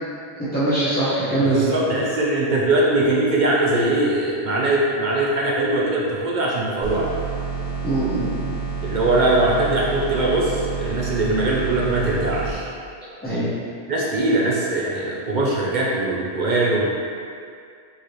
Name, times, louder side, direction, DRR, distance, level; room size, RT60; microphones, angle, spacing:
voice 1, 0.4-1.6 7.8-8.5 13.2-13.5, right 1 dB, 10° left, -14 dB, 0.6 m, -22 dB
voice 2, 1.4-7.1 8.8-12.7 13.9-16.9, right 2 dB, 50° right, -5 dB, 0.6 m, -21 dB
sound 1, 6.8-12.5, right 5 dB, 30° left, 1.4 m, -29 dB
4.7 x 3.2 x 3.0 m, 2.2 s
omnidirectional pair, 1.2 m